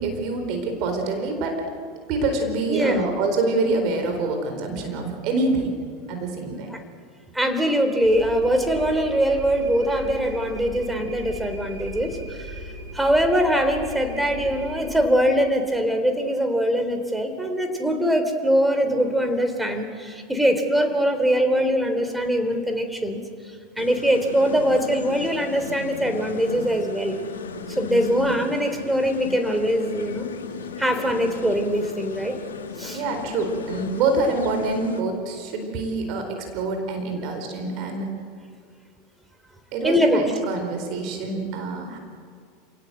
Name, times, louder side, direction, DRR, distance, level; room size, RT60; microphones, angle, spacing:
voice 1, 0.0-1.6 2.1-5.7 6.1-6.7 32.9-38.1 39.7-42.0, right 3 dB, 50° right, 4 dB, 4.2 m, -26 dB
voice 2, 2.7-3.0 6.7-6.8 7.3-12.6 12.9-23.2 23.8-27.2 27.7-30.3 30.8-32.4 32.8-33.0 39.8-40.3, equal, 5° right, 7 dB, 3.6 m, -22 dB
sound 1, 8.0-14.9, right 1 dB, 80° right, 7.1 m, -38 dB
sound 2, 23.8-35.0, left 5 dB, 75° left, 2.0 m, -36 dB
28.5 x 18.0 x 8.0 m, 2.1 s
figure-of-eight pair, 85°, 0 cm